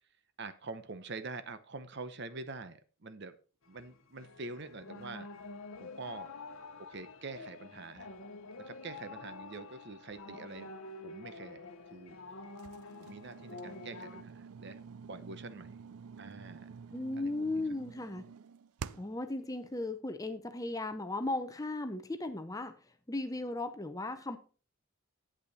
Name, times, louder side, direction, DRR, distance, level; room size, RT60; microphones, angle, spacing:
voice 1, 0.4-3.4 3.7-5.3 5.8-6.3 6.8-8.1 8.6-10.7 11.0-12.2 13.0-14.8 15.1-15.8 16.2-16.7 17.2-17.3, right 3 dB, 50° right, 0.8 m, -45 dB
sound 1, 3.6-14.2, left 3 dB, 65° left, 1.0 m, -48 dB
sound 2, 12.6-19.3, right 6 dB, 80° right, 0.4 m, -49 dB
voice 2, 16.9-18.2 18.9-22.7 23.1-24.4, left 2 dB, 15° left, 0.7 m, -36 dB
8.5 x 8.5 x 4.1 m
head